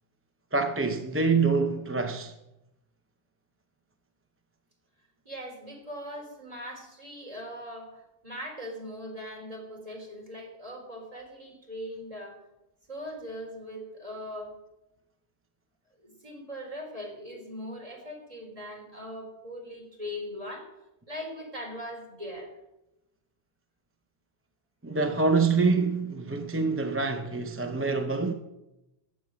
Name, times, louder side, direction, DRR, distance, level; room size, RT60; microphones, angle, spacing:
voice 1, 0.5-2.3 24.8-28.3, right 4 dB, 15° right, 0.6 m, -26 dB
voice 2, 5.3-12.4 12.9-14.5 16.0-20.7 21.1-22.6, equal, 35° right, 3.7 m, -40 dB
15.0 x 8.7 x 6.3 m
omnidirectional pair, 1.1 m